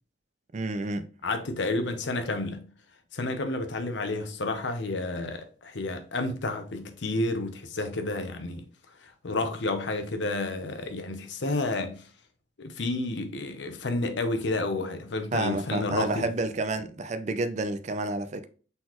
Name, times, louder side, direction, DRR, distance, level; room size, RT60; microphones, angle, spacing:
voice 1, 0.5-1.1 15.3-18.5, right 2 dB, 35° right, 0.4 m, -30 dB
voice 2, 1.2-2.7 3.1-8.7 9.0-12.1 12.6-16.3, left 2 dB, 70° left, 0.7 m, -30 dB
4.0 x 3.9 x 3.0 m
head